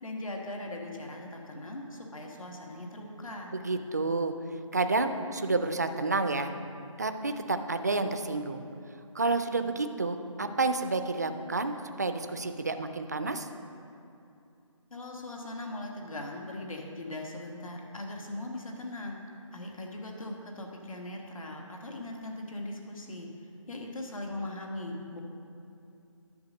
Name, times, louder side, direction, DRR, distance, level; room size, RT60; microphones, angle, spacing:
voice 1, 0.0-3.5 14.9-19.2 19.5-23.3 23.7-25.2, left 1 dB, 85° left, 1 dB, 1.7 m, -39 dB
voice 2, 3.5-4.3 4.7-6.5 7.0-8.6 9.1-13.5, right 3 dB, 30° right, 8 dB, 0.3 m, -30 dB
10.5 x 6.3 x 5.2 m, 2.7 s
hypercardioid pair, 170°, 17 cm